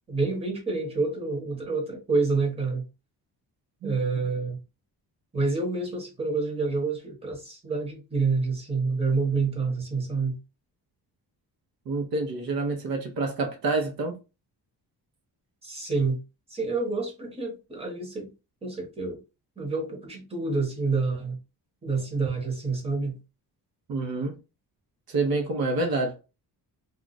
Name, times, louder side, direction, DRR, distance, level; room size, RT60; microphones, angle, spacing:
voice 1, 0.1-2.9 3.8-4.6 5.3-10.4 15.6-16.2 16.5-18.3 18.6-19.2 19.6-21.4 21.8-23.2, right 4 dB, 15° right, 1.1 m, -28 dB
voice 2, 11.9-14.2 23.9-24.4 25.1-26.1, right 3 dB, 65° right, 0.9 m, -27 dB
2.4 x 2.4 x 4.0 m
wide cardioid pair, 155°, 39 cm